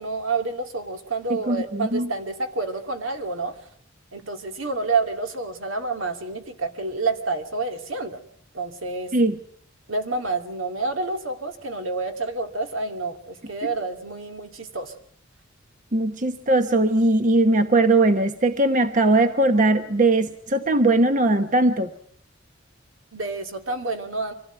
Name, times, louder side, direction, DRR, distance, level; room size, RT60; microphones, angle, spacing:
voice 1, 0.0-3.6 4.1-8.2 8.5-9.1 9.9-14.9 23.1-24.3, right 3 dB, 80° right, 6 dB, 2.5 m, -28 dB
voice 2, 1.3-2.1 9.1-9.4 15.9-21.9, right 2 dB, 40° right, 8 dB, 1.1 m, -20 dB
25.0 x 16.0 x 9.2 m, 0.65 s
head